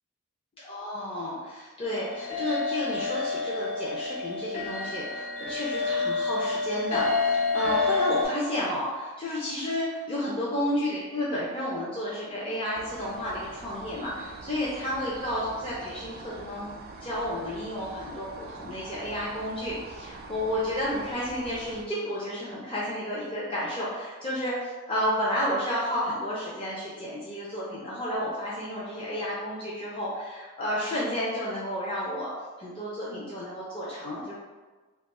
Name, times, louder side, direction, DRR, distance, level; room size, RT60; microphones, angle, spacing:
voice 1, 0.6-16.7 17.0-32.3 32.6-34.4, left 1 dB, 25° left, -7 dB, 0.5 m, -31 dB
sound 1, 1.8-8.2, left 4 dB, 60° left, 0.8 m, -29 dB
sound 2, 12.7-21.8, right 3 dB, 45° right, 0.3 m, -44 dB
2.9 x 2.3 x 4.0 m, 1.3 s
head